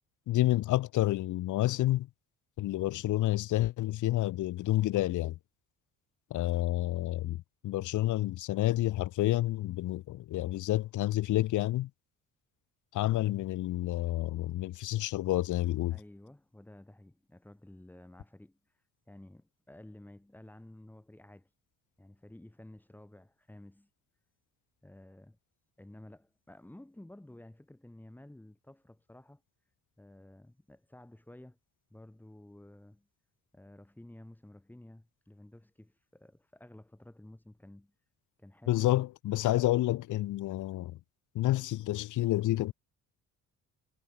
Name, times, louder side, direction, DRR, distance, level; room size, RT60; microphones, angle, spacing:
voice 1, 0.3-2.1 2.6-5.4 6.3-11.9 12.9-16.0 38.7-41.0 41.3-42.7, left 15 dB, 70° left, 1.0 m, -29 dB
voice 2, 15.9-18.6 19.1-21.5 22.0-23.9 24.8-25.4 25.8-29.4 30.0-31.6 31.9-33.1 33.5-37.9 38.4-38.9, left 1 dB, 5° left, 6.8 m, -53 dB
cardioid pair, 145°, 32 cm